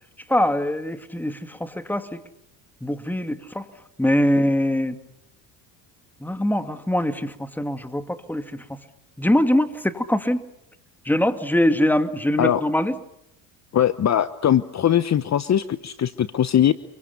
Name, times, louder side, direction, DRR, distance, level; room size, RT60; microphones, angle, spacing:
voice 1, 0.3-2.2 2.8-3.7 4.0-5.0 6.2-8.8 9.2-10.4 11.0-12.9, left 1 dB, 5° left, 9 dB, 2.4 m, -23 dB
voice 2, 13.7-16.7, left 10 dB, 35° left, 14 dB, 1.1 m, -20 dB
29.5 x 23.5 x 7.1 m, 0.82 s
supercardioid pair, 85°, 46 cm